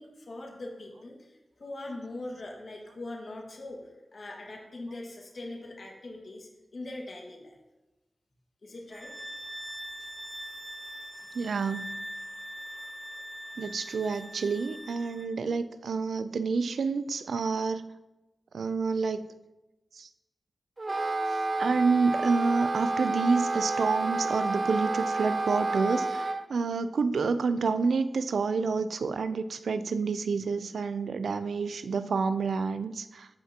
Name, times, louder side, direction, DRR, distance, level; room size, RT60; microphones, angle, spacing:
voice 1, 0.0-7.6 8.6-9.1, left 2 dB, 60° left, -1 dB, 1.8 m, -42 dB
sound 1, 8.9-15.3, equal, 15° right, 1.5 m, -42 dB
voice 2, 11.3-11.9 13.6-17.9 18.5-19.3 20.0-20.1 21.6-33.3, right 4 dB, 90° right, 12 dB, 0.4 m, -28 dB
Wind instrument woodwind instrument, 20.8-26.4, right 2 dB, 40° right, 0.6 m, -29 dB
14.5 x 5.7 x 2.9 m, 1.0 s
wide cardioid pair, 75°, 0 cm